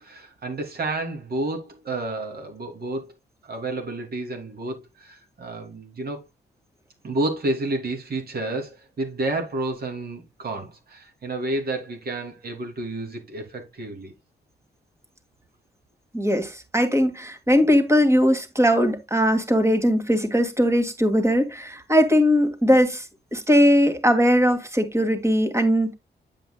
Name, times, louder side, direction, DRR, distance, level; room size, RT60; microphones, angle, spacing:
voice 1, 0.0-3.1 3.4-6.3 7.0-14.1, right 2 dB, 60° right, 3.1 m, -30 dB
voice 2, 16.1-23.1 23.3-25.9, equal, 15° right, 2.3 m, -20 dB
8.8 x 7.9 x 2.3 m
cardioid pair, 85°, 18 cm